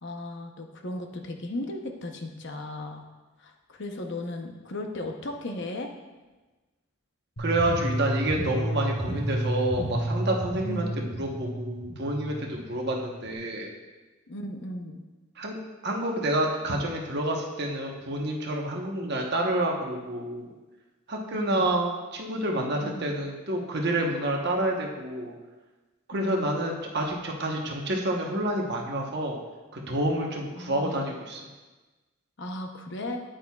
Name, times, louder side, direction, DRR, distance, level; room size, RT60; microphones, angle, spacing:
voice 1, 0.0-3.0 3.4-5.9 10.6-11.0 14.3-15.0 21.3-21.7 22.7-23.1 26.1-26.5 30.6-31.1 32.4-33.2, left 1 dB, 60° left, 3 dB, 0.8 m, -36 dB
sound 1, 7.4-13.3, right 1 dB, 85° left, 2.2 m, -31 dB
voice 2, 7.4-13.7 15.4-15.6 15.8-20.5 21.1-25.3 26.1-29.4 29.7-31.4, right 1 dB, 55° right, 0 dB, 1.1 m, -28 dB
9.2 x 8.7 x 2.4 m, 1.2 s
head